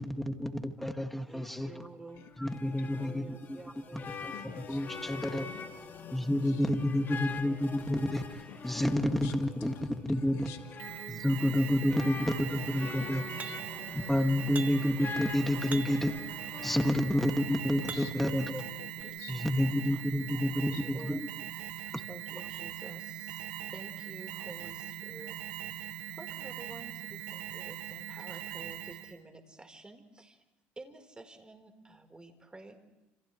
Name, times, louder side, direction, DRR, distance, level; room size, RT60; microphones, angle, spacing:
voice 1, 0.0-1.9 2.4-3.6 3.9-5.5 6.1-10.5 11.1-13.3 13.9-16.1 16.6-18.6 19.3-21.3 21.9-22.0, left 1 dB, 5° left, 5 dB, 2.2 m, -30 dB
voice 2, 1.2-2.3 2.8-4.5 5.3-5.6 6.0-7.7 8.7-10.0 10.4-10.8 12.1-13.4 15.0-15.1 16.0-16.1 19.0-19.2 19.9-20.0 20.6-21.2 21.8-25.4 25.8-25.9 26.2-30.4 30.8-32.8, right 2 dB, 15° right, 5 dB, 4.3 m, -51 dB
sound 1, 2.1-17.4, left 5 dB, 40° left, 2.5 m, -45 dB
voice 3, 4.3-5.1 5.4-6.2 6.5-6.6 8.5-9.3 10.3-10.6 11.2-11.3 12.8-13.1 13.4-13.9 17.8-18.1 18.4-19.3 20.7-20.8, left 11 dB, 75° left, 6 dB, 1.9 m, -50 dB
Alarm, 10.8-29.2, right 12 dB, 80° right, 1.5 m, -41 dB
sound 2, 13.4-13.8 14.5-15.0 15.7-16.2 17.0-18.3 19.0-19.1, right 5 dB, 30° right, 1.8 m, -44 dB
29.5 x 28.5 x 3.3 m, 1.0 s
supercardioid pair, 80°, 5 cm